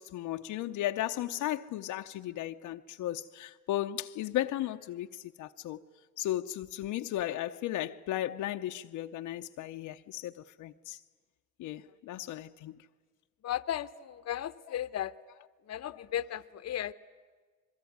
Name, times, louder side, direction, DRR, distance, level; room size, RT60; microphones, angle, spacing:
voice 1, 0.0-5.8 6.2-11.0 11.6-12.8, left 13 dB, 85° left, 0.8 m, -35 dB
voice 2, 13.4-15.1 15.7-16.9, left 11 dB, 55° left, 0.9 m, -35 dB
26.5 x 22.0 x 9.4 m
cardioid pair, 90°, 30 cm